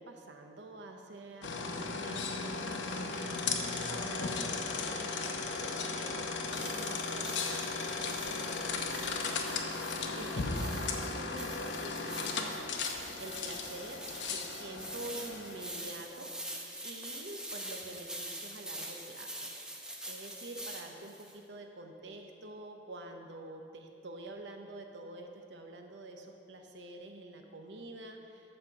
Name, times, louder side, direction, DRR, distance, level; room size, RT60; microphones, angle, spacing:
voice 1, 0.0-12.7 13.2-16.3 16.8-19.5 20.1-28.6, right 2 dB, 70° right, 3 dB, 0.8 m, -47 dB
sound 1, 1.4-15.8, left 4 dB, 75° left, 0.8 m, -36 dB
sound 2, 6.5-21.4, right 1 dB, 5° right, 0.8 m, -45 dB
13.0 x 4.3 x 6.5 m, 2.5 s
head